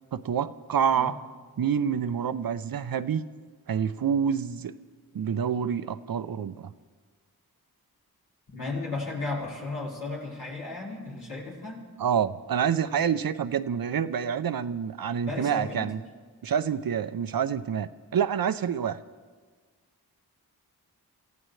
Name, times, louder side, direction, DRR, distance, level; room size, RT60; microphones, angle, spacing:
voice 1, 0.1-1.2 1.6-3.2 3.7-4.7 5.1-6.7 12.0-16.0 16.4-19.0, right 8 dB, 65° right, 13 dB, 0.6 m, -27 dB
voice 2, 8.5-11.9 15.3-15.9, left 3 dB, 90° left, -6 dB, 4.6 m, -34 dB
27.5 x 15.0 x 3.2 m, 1.5 s
cardioid pair, 45°, 38 cm